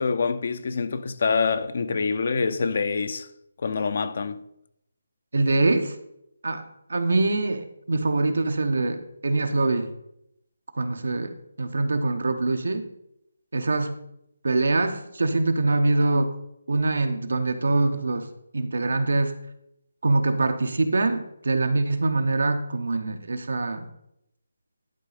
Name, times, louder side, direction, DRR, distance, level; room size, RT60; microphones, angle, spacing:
voice 1, 0.0-3.3 3.6-4.4, left 5 dB, 50° left, 0.6 m, -25 dB
voice 2, 5.3-6.0 6.4-9.9 10.7-12.9 13.5-13.9 14.4-16.3 16.7-18.3 18.5-19.3 20.0-23.9, right 2 dB, 75° right, 1.0 m, -24 dB
11.0 x 4.1 x 5.0 m
hypercardioid pair, 165°, 0 cm